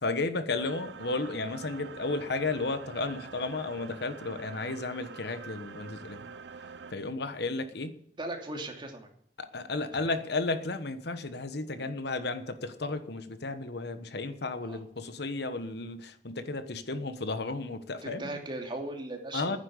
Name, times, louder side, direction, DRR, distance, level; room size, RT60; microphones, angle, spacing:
voice 1, 0.0-6.3 6.9-7.9 9.4-18.3 19.3-19.6, left 3 dB, 65° left, 10 dB, 1.2 m, -33 dB
sound 1, 0.5-6.9, right 5 dB, 70° right, 0.7 m, -46 dB
voice 2, 8.2-9.1 14.6-14.8 18.0-19.6, right 1 dB, 25° right, 2 dB, 2.7 m, -38 dB
11.5 x 9.9 x 8.2 m, 0.68 s
head